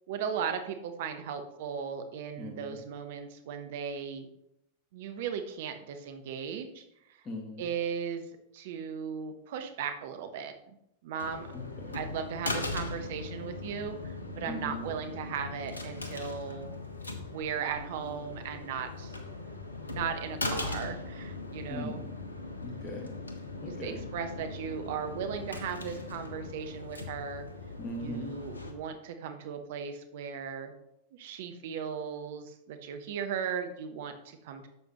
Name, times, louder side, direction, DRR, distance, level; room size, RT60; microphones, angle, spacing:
voice 1, 0.1-4.3 4.9-6.8 7.1-7.2 7.6-8.3 8.5-10.5 11.0-11.5 11.9-16.8 17.1-19.2 19.9-22.0 23.7-27.5 28.0-30.7 31.1-34.7, right 7 dB, 55° right, 7 dB, 0.9 m, -37 dB
voice 2, 2.4-2.8 7.2-7.6 11.5-12.0 14.5-14.9 21.7-22.1 22.6-23.1 23.6-24.0 27.8-28.3, left 1 dB, 25° left, 0 dB, 1.4 m, -39 dB
sound 1, 11.2-28.7, left 2 dB, 80° left, 1.0 m, -39 dB
11.0 x 7.1 x 3.0 m, 0.81 s
figure-of-eight pair, 90°, 0 cm